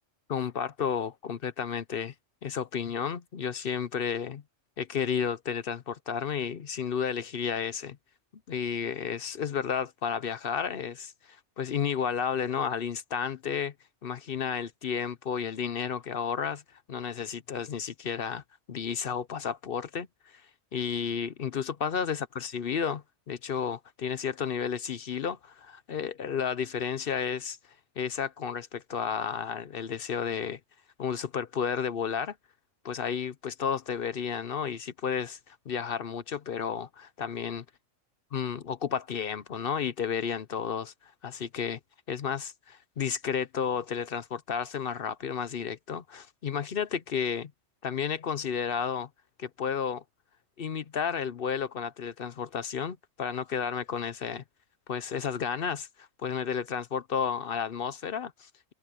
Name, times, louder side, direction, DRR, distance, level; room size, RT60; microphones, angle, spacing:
voice 1, 0.3-2.1 2.4-4.4 4.8-8.0 8.5-13.7 14.0-16.6 16.9-18.4 18.7-20.1 20.3-20.4 20.7-27.6 28.0-30.6 31.0-32.3 32.8-37.6 38.3-41.8 42.1-47.5 47.8-49.1 49.4-50.0 50.6-54.4 54.9-58.7, left 7 dB, 50° left, 0.8 m, -32 dB
omnidirectional pair, 1.3 m